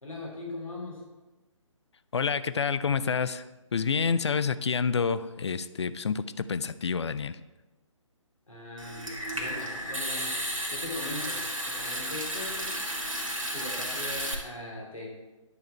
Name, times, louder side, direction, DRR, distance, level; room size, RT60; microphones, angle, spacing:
voice 1, 0.0-1.0 8.5-10.4 10.7-11.4 11.6-12.7 13.5-15.1, left 2 dB, 85° left, -2 dB, 2.8 m, -40 dB
voice 2, 2.1-7.4, left 5 dB, 60° left, 14 dB, 0.4 m, -28 dB
Water tap faucet / Sink (filling or washing) / Trickle dribble, 8.8-14.3, equal, 90° right, 1.6 m, -33 dB
9.6 x 4.7 x 4.5 m, 1.2 s
figure-of-eight pair, 140°, 17 cm